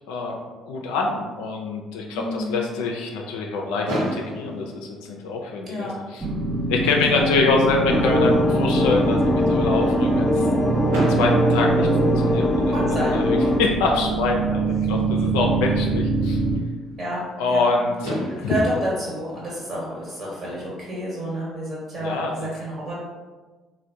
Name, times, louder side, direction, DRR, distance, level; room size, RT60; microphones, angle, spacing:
voice 1, 0.1-0.4 0.7-6.2 6.7-10.5 10.9-12.7 13.1-16.4 17.4-18.1 18.4-18.5 22.0-22.3, left 3 dB, 75° left, 1 dB, 0.3 m, -25 dB
voice 2, 2.1-2.7 5.6-5.9 7.0-7.3 12.7-13.2 14.7-15.1 15.7-16.0 17.0-17.2 17.4-17.7 18.3-23.0, equal, 45° right, -6 dB, 1.2 m, -30 dB
Fireworks, 3.9-5.9 6.7-6.8 7.0-7.2 7.5-7.6 10.9-12.7 14.4-14.5 17.6-17.7 18.0-20.3, equal, 85° right, 0.9 m, -32 dB
sound 1, 6.2-16.6, right 3 dB, 30° right, 0.5 m, -24 dB
sound 2, 7.9-13.6, left 1 dB, 25° left, 0.5 m, -21 dB
3.2 x 2.1 x 2.7 m, 1.3 s
hypercardioid pair, 50°, 0 cm